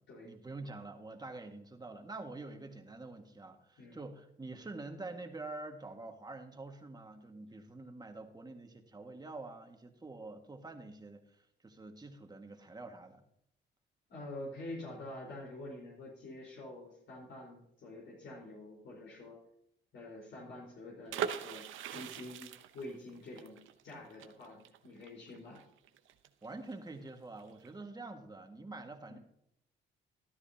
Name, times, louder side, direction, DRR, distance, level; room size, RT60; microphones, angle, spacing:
voice 1, 0.2-13.2 26.4-29.2, right 2 dB, 20° right, 4 dB, 1.8 m, -46 dB
voice 2, 14.1-19.4 19.9-23.6 23.8-25.6 29.1-29.2, left 1 dB, 70° left, -3 dB, 4.5 m, -47 dB
sound 1, 21.1-26.7 27.0-27.1 27.4-27.7, right 9 dB, 80° right, 0.8 m, -41 dB
13.5 x 12.0 x 2.9 m, 0.77 s
cardioid pair, 90°, 20 cm